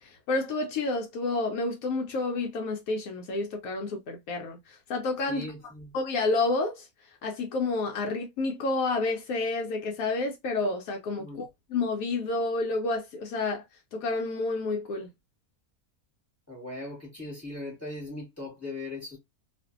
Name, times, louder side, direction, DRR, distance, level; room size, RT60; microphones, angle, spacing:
voice 1, 0.0-5.5 5.9-6.9 7.2-13.6 13.9-15.1, left 3 dB, 80° left, 1.0 m, -29 dB
voice 2, 5.3-5.9 11.2-11.4 16.5-19.2, left 2 dB, 10° left, 1.1 m, -39 dB
2.5 x 2.4 x 2.3 m
omnidirectional pair, 1.5 m